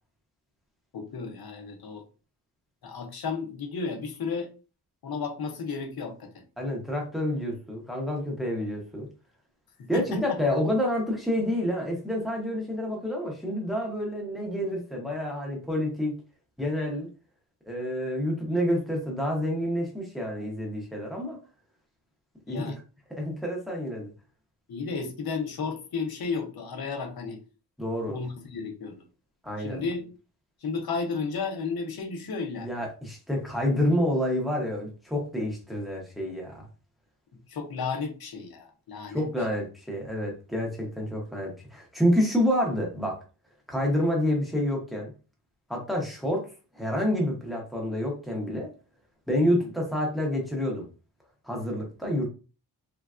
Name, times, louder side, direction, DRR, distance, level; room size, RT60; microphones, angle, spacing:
voice 1, 0.9-2.0 2.8-4.5 5.0-6.4 9.8-10.2 22.5-22.8 24.7-27.4 28.1-28.9 29.6-30.0 30.6-32.7 37.5-39.3 49.4-49.7, left 4 dB, 65° left, 0.7 m, -33 dB
voice 2, 6.6-9.1 9.9-16.1 16.6-17.1 17.7-21.4 22.5-22.6 23.1-24.1 27.8-28.2 29.4-29.8 32.6-36.7 39.1-43.2 43.7-45.1 45.7-46.5 46.7-48.7 49.3-50.8 51.4-52.3, equal, ahead, 0.7 m, -28 dB
3.3 x 2.2 x 2.4 m
wide cardioid pair, 170°, 40 cm